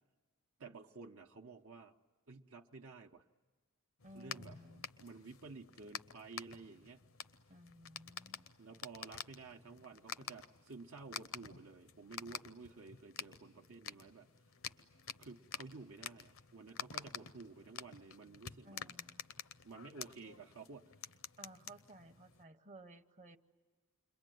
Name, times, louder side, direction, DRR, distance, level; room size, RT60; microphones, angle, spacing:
voice 1, 0.6-2.0 2.3-3.2 4.1-4.6 5.0-7.0 8.6-14.3 15.2-18.9 19.6-20.8, right 4 dB, 70° right, 2 dB, 0.9 m, -52 dB
sound 1, 4.0-22.4, left 8 dB, 60° left, 0.7 m, -50 dB
voice 2, 4.0-4.9 7.5-8.5 18.6-19.3 21.4-23.4, right 1 dB, 35° right, 9 dB, 0.9 m, -57 dB
28.5 x 22.5 x 9.3 m, 1.4 s
head